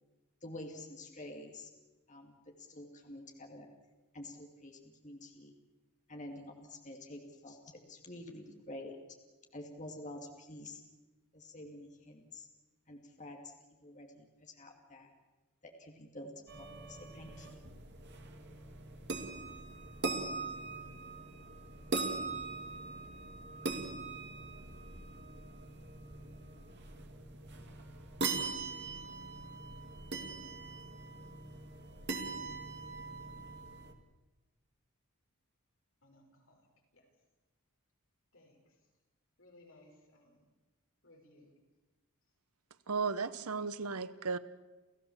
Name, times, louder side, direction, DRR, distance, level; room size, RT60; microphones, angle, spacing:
voice 1, 0.4-1.7 2.1-3.7 4.1-5.5 6.1-9.0 9.5-10.8 11.3-12.5 12.9-13.5 13.8-15.1 15.6-17.6, left 1 dB, 35° left, 2.5 m, -48 dB
sound 1, 16.5-33.9, right 3 dB, 50° right, 2.3 m, -41 dB
voice 2, 36.0-36.7 36.9-37.1 38.3-38.8 39.4-40.4 41.0-41.5, left 1 dB, 60° left, 5.9 m, -62 dB
voice 3, 42.9-44.4, right 4 dB, 80° right, 1.0 m, -35 dB
29.5 x 15.0 x 7.3 m
head